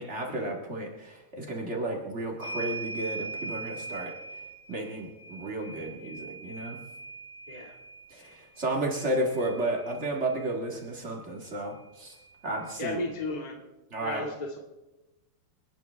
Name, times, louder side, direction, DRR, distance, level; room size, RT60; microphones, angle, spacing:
voice 1, 0.0-4.1 4.7-6.8 8.1-12.1 12.4-13.0 13.9-14.2, right 1 dB, 55° right, 0 dB, 0.7 m, -33 dB
sound 1, 2.4-10.5 11.8-11.9 12.2-13.2, right 3 dB, 35° left, 7.0 m, -41 dB
voice 2, 12.8-13.6 14.0-14.6, left 2 dB, 55° left, 1 dB, 0.4 m, -34 dB
30.0 x 10.5 x 3.5 m, 1.0 s
omnidirectional pair, 4.6 m